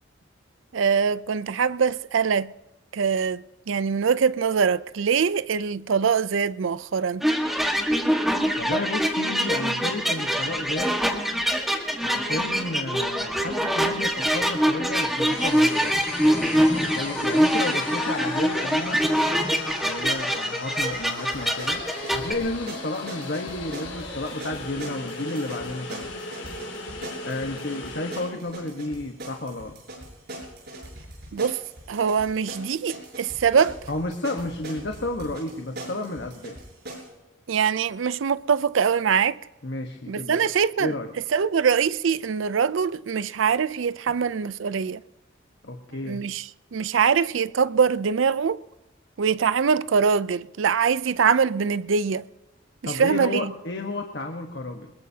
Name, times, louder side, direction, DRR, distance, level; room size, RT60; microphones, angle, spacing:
voice 1, 0.7-2.5 2.9-7.3 31.3-31.6 31.9-33.7 37.5-39.4 40.1-41.0 41.3-45.0 46.1-48.6 49.2-52.2 52.8-53.5, right 6 dB, 80° right, 0.5 m, -23 dB
sound 1, 7.2-22.3, equal, ahead, 1.5 m, -24 dB
voice 2, 8.6-11.0 12.0-19.0 19.8-21.8 22.1-26.1 27.2-29.8 33.9-36.6 39.6-40.5 40.8-41.1 45.6-46.2 52.8-54.9, left 2 dB, 60° left, 1.3 m, -32 dB
sound 2, 15.2-28.4, left 3 dB, 90° left, 5.9 m, -37 dB
sound 3, 20.9-37.1, right 1 dB, 55° right, 7.2 m, -41 dB
22.5 x 21.0 x 2.8 m
head